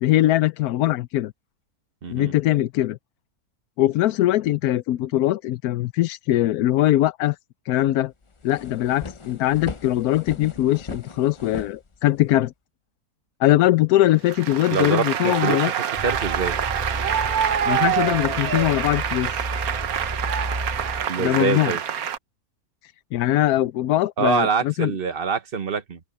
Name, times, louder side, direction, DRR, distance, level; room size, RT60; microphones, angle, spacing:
voice 1, 0.0-1.3 2.1-3.0 3.8-7.4 7.7-8.1 8.4-12.5 13.4-15.7 17.7-19.5 21.2-21.7 23.1-24.9, left 14 dB, 90° left, 1.1 m, -21 dB
voice 2, 2.0-2.3 14.7-15.7 16.0-16.6 21.1-21.8 24.2-26.0, right 5 dB, 40° right, 1.2 m, -25 dB
sound 1, 7.8-7.9 8.2-12.4, left 4 dB, 30° left, 0.6 m, -38 dB
Applause, 14.2-22.2, right 9 dB, 75° right, 1.5 m, -26 dB
sound 2, 15.9-21.1, right 1 dB, 20° right, 4.2 m, -33 dB
open air
omnidirectional pair, 1.5 m